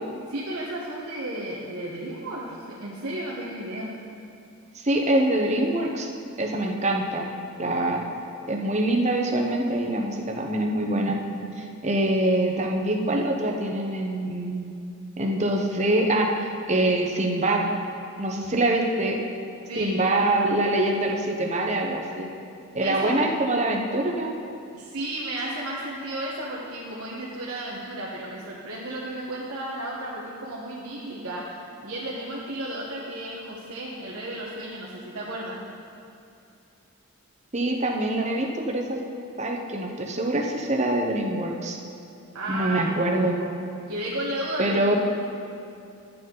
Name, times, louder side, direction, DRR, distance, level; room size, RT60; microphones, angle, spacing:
voice 1, 0.3-3.9 19.7-20.0 22.8-23.2 24.7-35.6 42.3-43.5 43.9-44.9, right 1 dB, 75° right, -6 dB, 1.2 m, -33 dB
voice 2, 4.7-6.1 6.4-7.3 7.6-8.0 8.5-11.2 11.6-14.6 15.2-17.7 18.2-19.2 19.8-22.3 22.7-24.3 37.5-39.0 39.4-41.8 42.5-43.4 44.6-44.9, right 1 dB, 30° right, 1 dB, 0.8 m, -24 dB
11.5 x 7.8 x 3.9 m, 2.7 s
head